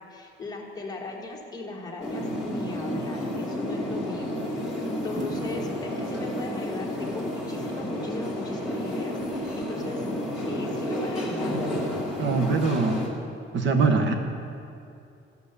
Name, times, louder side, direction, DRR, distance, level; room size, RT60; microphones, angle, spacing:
voice 1, 0.0-10.1 10.5-11.6, left 2 dB, 20° left, -1 dB, 1.3 m, -38 dB
sound 1, 2.0-13.1, left 1 dB, 5° right, 1.9 m, -31 dB
sound 2, 5.2-5.6 6.1-6.2 7.0-7.4 8.2-8.5 9.2-10.1 11.6-12.1, right 1 dB, 40° right, 0.9 m, -41 dB
voice 2, 12.2-13.0 13.5-14.1, right 4 dB, 60° right, 5 dB, 1.1 m, -22 dB
14.5 x 6.7 x 6.8 m, 2.6 s
cardioid pair, 170°, 21 cm